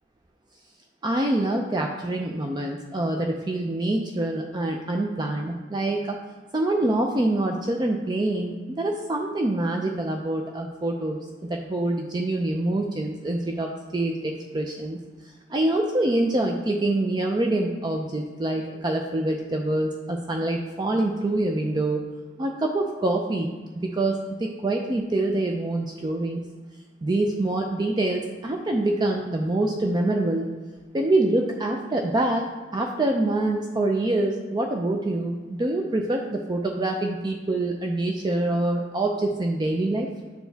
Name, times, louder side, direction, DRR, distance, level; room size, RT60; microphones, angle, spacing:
voice 1, 1.0-6.2 6.5-15.0 15.5-22.0 22.4-26.4 27.0-30.5 30.9-32.5 32.7-40.1, right 2 dB, 25° right, 2 dB, 0.4 m, -25 dB
9.1 x 4.4 x 3.4 m, 1.4 s
head